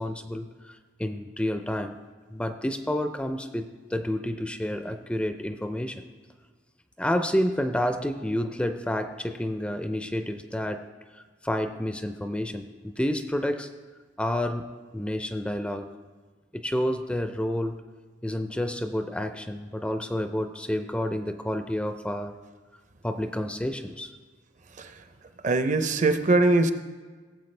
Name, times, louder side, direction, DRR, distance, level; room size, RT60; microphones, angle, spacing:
voice 1, 0.0-2.0 2.3-6.0 7.0-10.9 11.4-13.7 14.2-14.7 14.9-16.0 16.5-17.8 18.2-22.3 23.0-24.1, left 1 dB, 5° left, 7 dB, 0.4 m, -29 dB
voice 2, 24.7-25.0 25.4-26.7, right 2 dB, 40° right, 9 dB, 0.6 m, -22 dB
18.0 x 7.5 x 3.3 m, 1.4 s
head